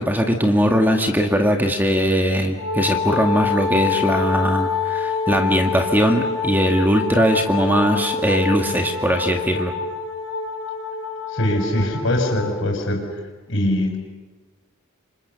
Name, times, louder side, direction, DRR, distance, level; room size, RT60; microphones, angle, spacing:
voice 1, 0.0-9.7, equal, 10° right, 3 dB, 1.9 m, -20 dB
Wind instrument woodwind instrument, 2.6-12.6, left 5 dB, 85° left, 3.5 m, -26 dB
voice 2, 11.3-13.1 13.5-14.0, left 1 dB, 60° left, 3 dB, 6.3 m, -22 dB
28.5 x 26.0 x 7.0 m, 1.3 s
head